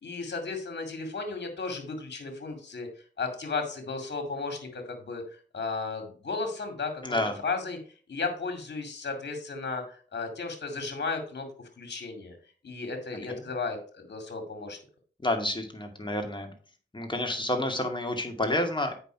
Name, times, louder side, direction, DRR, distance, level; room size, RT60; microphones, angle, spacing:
voice 1, 0.0-2.9 3.2-7.8 8.1-11.5 11.8-12.4 12.6-14.8, left 4 dB, 70° left, 5 dB, 2.3 m, -34 dB
voice 2, 7.0-7.4 13.3-13.4 15.2-16.5 16.9-18.9, left 1 dB, 25° left, 4 dB, 2.3 m, -29 dB
8.1 x 5.9 x 4.5 m, 0.41 s
cardioid pair, 50°, 18 cm